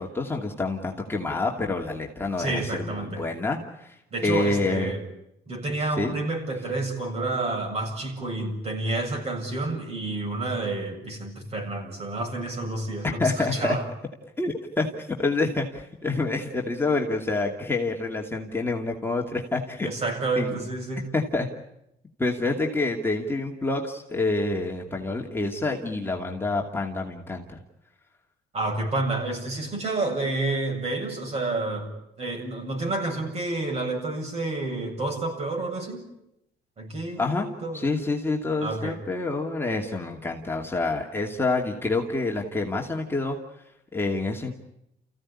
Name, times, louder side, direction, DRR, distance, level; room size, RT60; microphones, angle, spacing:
voice 1, 0.0-4.0 4.2-4.9 6.0-6.1 13.0-13.8 14.4-19.9 20.4-20.6 21.1-21.5 22.2-27.6 37.2-37.5 37.7-43.4 43.9-44.5, left 3 dB, 15° left, 0 dB, 2.5 m, -27 dB
voice 2, 2.4-3.2 4.1-5.0 5.5-13.8 19.8-21.1 28.5-31.9 32.2-36.1 36.8-37.8 38.6-39.0, right 2 dB, 40° right, 3 dB, 7.7 m, -29 dB
29.5 x 16.0 x 9.9 m, 0.84 s
cardioid pair, 110°, 17 cm